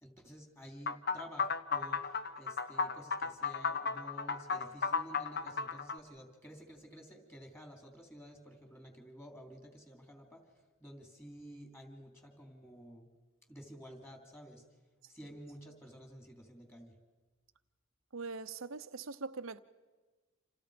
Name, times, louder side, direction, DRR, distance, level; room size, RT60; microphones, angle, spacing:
voice 1, 0.0-10.4 10.8-13.1 13.5-14.6 15.1-16.9, equal, 10° left, 3.7 m, -52 dB
sound 1, 0.9-6.0, left 5 dB, 45° left, 1.0 m, -34 dB
voice 2, 18.1-19.6, right 4 dB, 65° right, 0.9 m, -42 dB
30.0 x 28.0 x 5.2 m
head